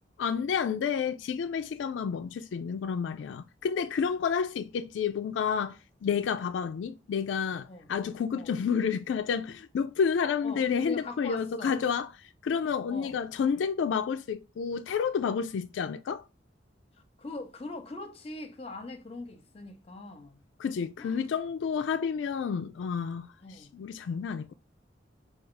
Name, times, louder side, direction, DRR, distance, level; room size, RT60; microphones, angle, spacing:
voice 1, 0.2-12.1 12.4-16.2 20.6-23.3 23.7-24.5, left 6 dB, 85° left, 0.3 m, -30 dB
voice 2, 10.4-11.8 12.9-13.2 16.9-20.4 21.0-21.3 23.4-23.7, left 2 dB, 35° left, 0.7 m, -42 dB
4.8 x 2.3 x 4.4 m
head